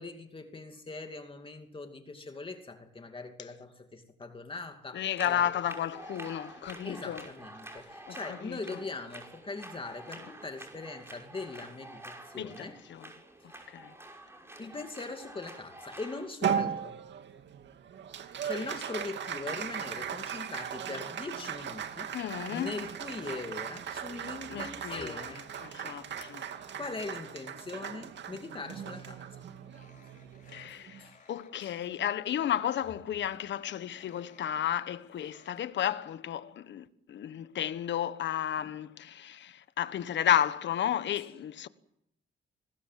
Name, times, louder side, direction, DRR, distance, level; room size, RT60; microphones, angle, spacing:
voice 1, 0.0-5.4 6.8-12.8 13.4-13.8 14.6-17.0 18.4-22.1 22.5-25.5 26.8-29.5 31.0-31.3 31.6-31.8, left 3 dB, 25° left, 2.6 m, -41 dB
voice 2, 4.9-7.3 8.1-8.8 12.4-13.1 13.7-13.9 22.1-22.7 24.5-25.2 25.6-26.4 30.5-41.7, left 10 dB, 65° left, 1.4 m, -33 dB
sound 1, 5.1-16.3, right 1 dB, 10° right, 5.7 m, -48 dB
Applause, 16.4-31.1, right 8 dB, 65° right, 2.3 m, -38 dB
sound 2, 22.3-28.3 28.6-35.6, left 5 dB, 40° left, 5.9 m, -61 dB
26.5 x 20.0 x 7.6 m
cardioid pair, 90°, 20 cm